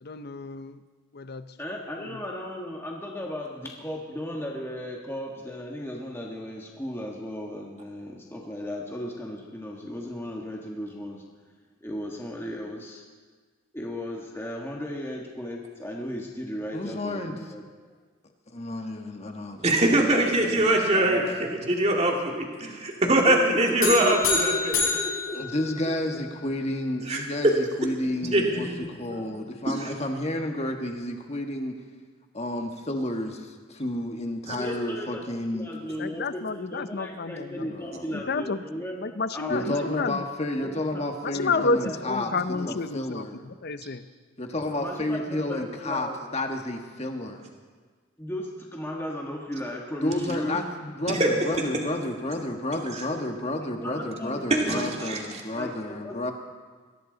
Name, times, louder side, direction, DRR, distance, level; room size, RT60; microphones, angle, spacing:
voice 1, 0.0-0.8 1.1-1.5 2.0-2.1 36.0-37.7 38.1-38.6 39.0-40.2 41.2-44.0, left 3 dB, 50° left, 12 dB, 0.6 m, -30 dB
voice 2, 1.6-11.2 11.8-13.0 13.7-17.7 20.1-21.6 23.3-23.4 23.8-25.6 26.1-26.2 34.6-36.4 36.7-39.1 39.3-40.1 40.6-41.0 41.3-42.7 44.8-46.2 48.2-50.6 53.8-55.1 55.5-56.3, equal, 10° left, -1 dB, 1.5 m, -36 dB
voice 3, 16.7-17.3 18.5-19.6 20.0-20.1 25.3-31.7 32.3-35.7 37.6-38.2 39.5-42.3 42.7-43.4 44.4-47.4 50.0-56.3, left 1 dB, 30° left, 4 dB, 1.5 m, -31 dB
voice 4, 19.6-21.2 21.7-24.7 27.1-27.5 28.3-29.2 29.7-29.9 34.5-34.6 51.1-51.3 51.7-51.8 52.9-53.0 54.5-54.8 55.1-55.2, right 1 dB, 30° right, 0 dB, 2.2 m, -23 dB
sound 1, 23.8-26.3, left 5 dB, 70° left, 6.3 m, -28 dB
22.0 x 16.5 x 4.0 m, 1.5 s
head